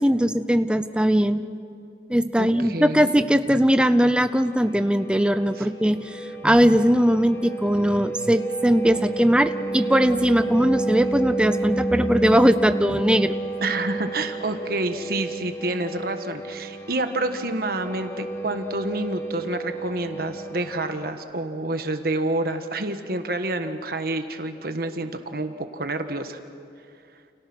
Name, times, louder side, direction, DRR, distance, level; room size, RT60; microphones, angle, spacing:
voice 1, 0.0-1.4 2.1-13.3, equal, 5° right, 11 dB, 0.7 m, -20 dB
voice 2, 2.4-3.2 5.6-5.7 13.6-26.4, right 2 dB, 55° right, 7 dB, 1.4 m, -28 dB
sound 1, 3.8-21.1, right 2 dB, 15° left, 1.2 m, -31 dB
30.0 x 29.5 x 6.1 m, 2.4 s
head